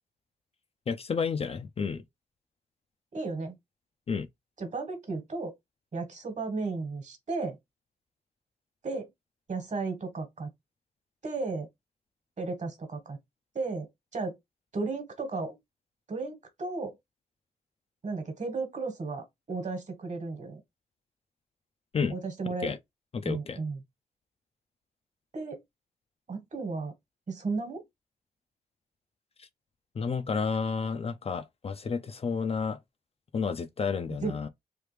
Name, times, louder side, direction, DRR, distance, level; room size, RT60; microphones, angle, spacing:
voice 1, 0.9-2.0 4.1-4.3 21.9-22.1 22.6-22.8 23.1-23.6 29.4-29.5 30.0-32.8 33.3-34.5, left 5 dB, 40° left, 0.4 m, -31 dB
voice 2, 3.1-3.6 4.6-5.5 5.9-7.6 8.8-9.1 9.5-10.5 11.2-11.7 12.4-13.2 13.5-14.3 14.7-15.6 16.1-16.9 18.0-20.6 22.1-22.8 23.2-23.8 25.3-25.6 26.3-26.9 27.3-27.8 34.2-34.5, right 3 dB, 45° right, 1.4 m, -34 dB
3.2 x 2.4 x 3.2 m
cardioid pair, 70°, 16 cm